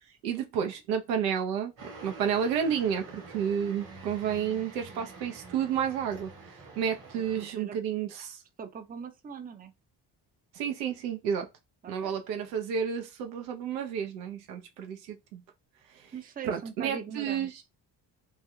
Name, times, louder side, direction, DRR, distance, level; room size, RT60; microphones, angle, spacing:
voice 1, 0.2-8.4 10.5-11.5 11.9-15.4 15.9-16.1 16.4-17.5, right 8 dB, 85° right, 0.6 m, -31 dB
sound 1, 1.8-7.5, right 3 dB, 65° right, 1.6 m, -47 dB
voice 2, 7.4-7.8 8.6-9.7 11.8-12.2 16.1-17.5, right 6 dB, 20° right, 0.5 m, -41 dB
3.3 x 2.1 x 2.2 m
hypercardioid pair, 45°, 50 cm